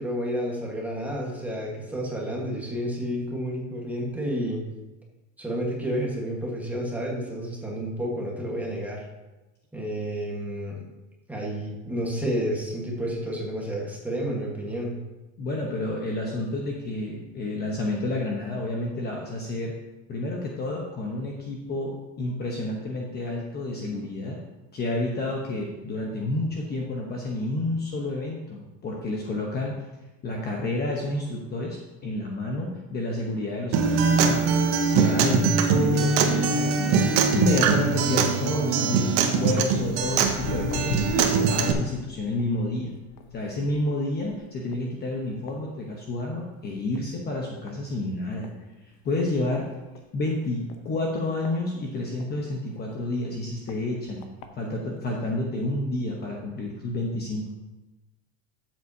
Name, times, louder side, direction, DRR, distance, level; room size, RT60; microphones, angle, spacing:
voice 1, 0.0-4.6 5.4-9.0 9.7-10.9 11.3-15.0, equal, 5° right, -3 dB, 1.4 m, -30 dB
voice 2, 15.4-19.7 20.1-24.4 24.7-29.8 30.2-36.9 37.3-42.9 43.3-48.5 49.0-49.7 50.1-54.2 54.6-57.5, left 2 dB, 25° left, -1 dB, 0.9 m, -30 dB
Acoustic guitar, 33.7-41.7, right 5 dB, 50° right, 1.1 m, -22 dB
Walk footsteps, 39.8-46.4 46.7-47.1 47.7-47.8 48.4-48.5 48.9-49.0 49.2-49.3 49.9-50.0 50.7-52.3 52.9-53.0 53.7-53.8 54.2-54.5 55.2-55.3, left 6 dB, 50° left, 0.9 m, -38 dB
12.5 x 7.5 x 2.8 m, 1.1 s
supercardioid pair, 160°, 42 cm